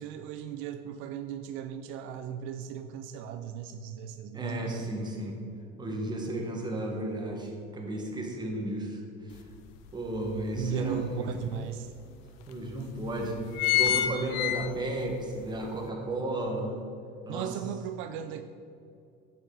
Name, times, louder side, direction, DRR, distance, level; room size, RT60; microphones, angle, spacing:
voice 1, 0.0-4.8 10.5-11.9 17.3-18.4, right 8 dB, 75° right, 8 dB, 0.5 m, -36 dB
voice 2, 4.3-5.4 5.8-9.4 9.9-11.5 12.5-13.4 13.7-16.8 17.2-17.5, right 1 dB, 20° right, 0 dB, 1.5 m, -33 dB
sound 1, 9.3-9.4 9.9-11.1 11.7-11.8 12.1-12.2 12.8-13.0 13.3-15.1 15.5-15.6, left 11 dB, 75° left, 0.6 m, -27 dB
8.4 x 6.6 x 4.0 m, 2.5 s
cardioid pair, 115°, 21 cm